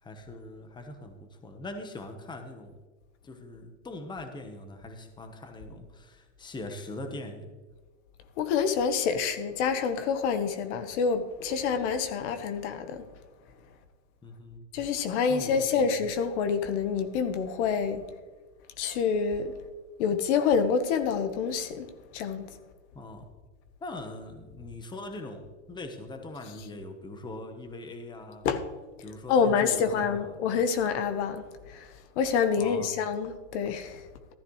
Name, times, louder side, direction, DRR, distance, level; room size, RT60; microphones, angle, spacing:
voice 1, 0.0-2.8 3.2-7.6 14.2-14.7 15.3-15.9 22.9-23.3 23.8-28.5 29.0-30.4 32.6-32.9, left 2 dB, 10° left, 1.1 m, -42 dB
voice 2, 8.4-13.1 14.7-18.0 18.8-19.5 20.0-22.6 28.4-28.6 29.3-34.0, left 6 dB, 70° left, 1.3 m, -27 dB
13.5 x 12.0 x 3.2 m
supercardioid pair, 130°, 36 cm